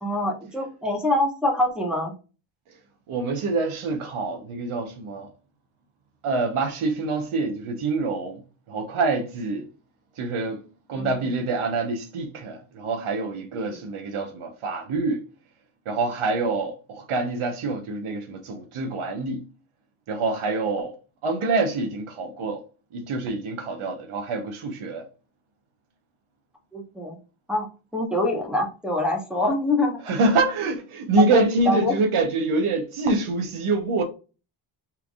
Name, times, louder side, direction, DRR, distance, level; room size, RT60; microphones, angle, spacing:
voice 1, 0.0-2.1 11.0-11.2 13.7-13.8 26.7-27.1 27.5-27.7 27.9-30.1 31.2-31.4 31.7-32.0, left 1 dB, ahead, 1.0 m, -25 dB
voice 2, 3.1-5.3 6.2-8.4 8.7-9.7 10.2-10.6 10.9-15.3 15.9-19.5 20.1-21.0 21.2-22.6 22.9-25.1 30.0-34.0, right 3 dB, 75° right, 1.0 m, -26 dB
5.7 x 3.4 x 2.4 m
wide cardioid pair, 170°, 50 cm